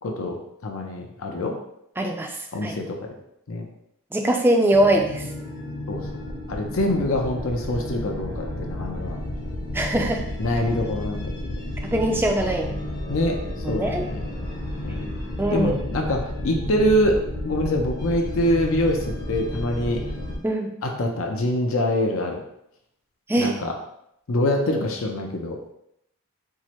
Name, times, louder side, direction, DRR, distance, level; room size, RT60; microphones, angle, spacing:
voice 1, 0.0-1.6 2.5-3.1 3.5-3.7 5.9-6.1 6.5-9.2 10.4-11.5 13.1-13.4 13.7-14.3 14.8-15.2 15.5-20.0 20.8-22.4 23.4-23.7 24.3-25.6, left 1 dB, 70° left, 2 dB, 0.5 m, -25 dB
voice 2, 2.0-2.4 2.6-2.7 4.1-5.2 9.7-10.2 11.8-12.8 13.6-14.1 15.4-15.7 20.4-20.7 23.3-23.5, right 1 dB, 10° right, 2 dB, 0.4 m, -22 dB
sound 1, 4.7-20.4, left 1 dB, 50° left, 0.9 m, -32 dB
4.6 x 2.0 x 4.3 m, 0.78 s
head